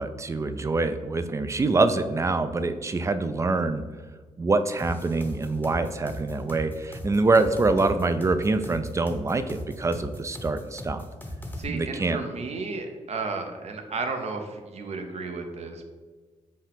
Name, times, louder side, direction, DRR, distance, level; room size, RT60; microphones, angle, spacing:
voice 1, 0.0-3.8 4.4-11.0 11.7-12.2, right 3 dB, 25° right, 10 dB, 0.3 m, -25 dB
sound 1, 4.8-11.6, left 1 dB, 15° left, 0.7 m, -37 dB
voice 2, 11.6-15.9, right 4 dB, 55° right, 4 dB, 0.7 m, -33 dB
5.3 x 2.5 x 3.5 m, 1.4 s
cardioid pair, 70°, 13 cm